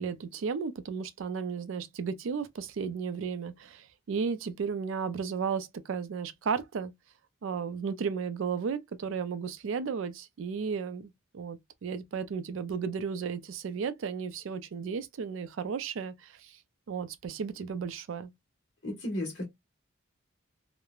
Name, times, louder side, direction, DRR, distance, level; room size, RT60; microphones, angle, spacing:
voice 1, 0.0-6.9 7.4-16.6 16.9-18.3, right 6 dB, 65° right, 0.4 m, -34 dB
voice 2, 18.8-19.4, left 1 dB, 55° left, 1.3 m, -33 dB
3.0 x 2.1 x 2.3 m
head